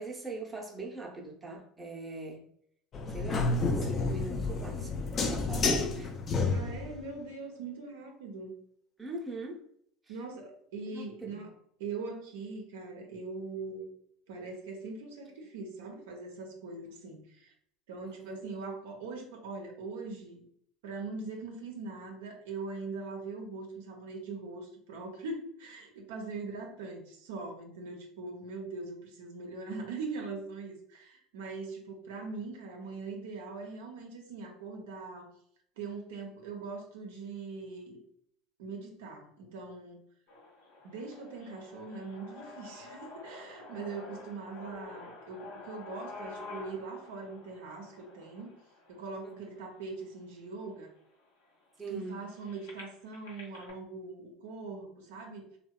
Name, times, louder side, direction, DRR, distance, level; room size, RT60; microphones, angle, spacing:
voice 1, 0.0-2.5 3.1-6.1 9.0-9.7 10.1-10.2 10.9-11.4 18.0-18.4 49.2-49.5 51.8-52.2, right 2 dB, 15° right, -1 dB, 0.6 m, -42 dB
sound 1, 2.9-7.0, left 3 dB, 40° left, 0.4 m, -30 dB
voice 2, 6.5-8.5 10.1-11.5 11.8-13.9 14.3-17.5 17.9-20.4 20.8-35.3 35.8-38.0 38.6-40.0 40.8-48.5 48.9-50.9 51.9-55.5, right 3 dB, 75° right, 1 dB, 0.5 m, -41 dB
sound 2, 40.3-50.2 50.9-51.0 51.2-53.7, left 3 dB, 80° left, 0.7 m, -49 dB
2.6 x 2.2 x 2.2 m, 0.67 s
hypercardioid pair, 80°, 0 cm